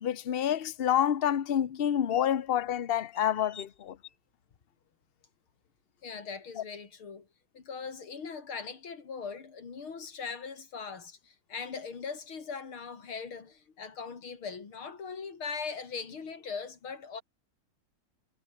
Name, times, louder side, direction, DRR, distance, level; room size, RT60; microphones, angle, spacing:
voice 1, 0.0-3.7, left 10 dB, 60° left, 0.6 m, -28 dB
voice 2, 3.1-3.6 6.0-7.3 7.5-17.2, left 5 dB, 80° left, 3.8 m, -40 dB
omnidirectional pair, 2.3 m